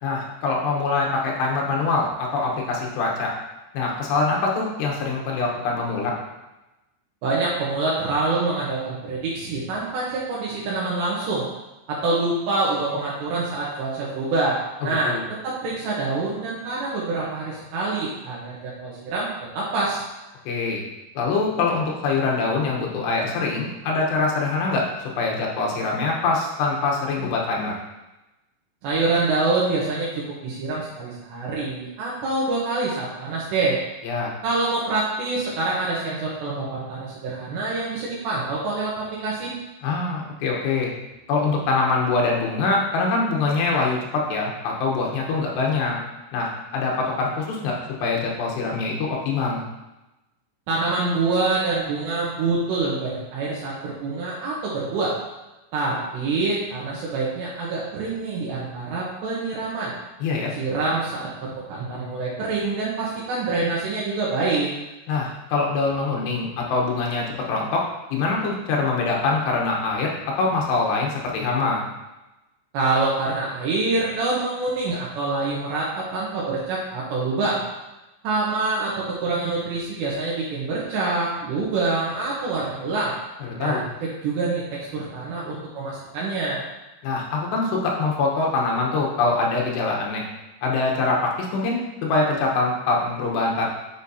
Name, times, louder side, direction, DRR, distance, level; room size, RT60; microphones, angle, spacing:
voice 1, 0.0-3.3 3.7-6.1 15.0-15.2 20.5-20.8 21.2-24.9 25.2-27.7 34.0-34.3 39.8-40.9 41.3-46.0 46.3-49.6 60.2-60.5 65.1-67.8 68.1-70.1 70.4-71.8 83.4-83.8 87.0-90.3 90.6-93.7, left 3 dB, 75° left, -1 dB, 3.1 m, -24 dB
voice 2, 7.2-11.5 11.9-15.2 15.4-19.3 19.5-20.0 28.8-33.8 34.4-39.5 50.7-55.1 55.7-59.9 60.6-64.7 72.7-77.6 78.2-83.1 83.6-83.9 84.2-86.6, right 3 dB, 75° right, -6 dB, 3.2 m, -26 dB
9.2 x 5.1 x 2.8 m, 1.0 s
omnidirectional pair, 5.2 m